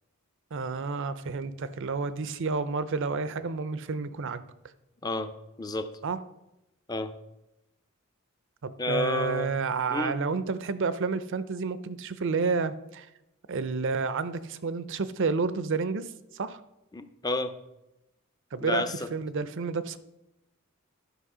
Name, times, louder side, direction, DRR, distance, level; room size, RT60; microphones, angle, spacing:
voice 1, 0.5-4.4 6.0-6.2 8.6-13.1 13.5-16.1 16.3-16.6 18.5-18.8 19.1-20.0, right 4 dB, 60° right, 13 dB, 0.6 m, -30 dB
voice 2, 5.0-5.3 5.6-5.9 6.9-7.1 8.8-9.5 9.9-10.2 16.9-17.5 18.6-19.1, left 2 dB, 20° left, 9 dB, 0.6 m, -30 dB
11.0 x 5.9 x 4.9 m, 0.91 s
head